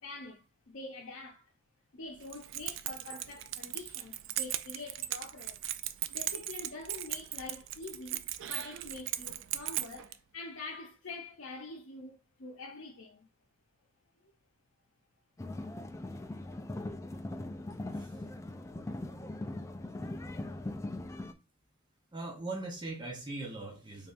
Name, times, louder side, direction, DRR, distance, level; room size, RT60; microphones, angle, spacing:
voice 1, 0.0-1.5 1.9-5.6 6.1-13.3, left 3 dB, 75° left, 0.7 m, -45 dB
Keys jangling, 2.2-10.2, right 13 dB, 65° right, 0.3 m, -38 dB
sound 1, 15.4-21.3, left 1 dB, 15° left, 0.3 m, -40 dB
voice 2, 22.1-24.1, right 2 dB, 20° right, 0.8 m, -40 dB
4.0 x 3.3 x 2.5 m
head